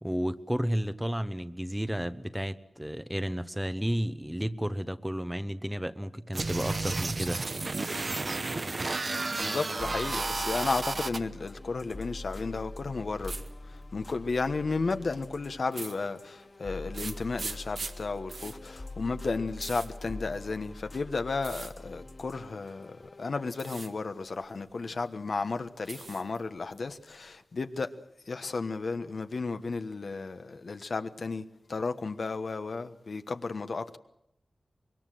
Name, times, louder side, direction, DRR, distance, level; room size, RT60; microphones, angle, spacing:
voice 1, 0.0-7.4, equal, 5° right, 0.9 m, -32 dB
sound 1, 6.3-11.2, right 3 dB, 50° right, 1.0 m, -32 dB
voice 2, 9.4-13.4 13.7-27.9 28.3-34.0, left 4 dB, 65° left, 1.2 m, -33 dB
sound 2, 9.8-23.6, left 2 dB, 45° left, 2.1 m, -44 dB
sound 3, 10.4-11.0 11.3-12.0 13.2-13.5 14.4-14.7 15.7-16.5 16.9-20.8 21.4-21.7 22.7-23.1 23.5-23.9 24.3-25.1 25.4-26.4 26.7-27.4, right 3 dB, 70° right, 1.8 m, -42 dB
25.0 x 21.5 x 7.7 m
wide cardioid pair, 90°, 0 cm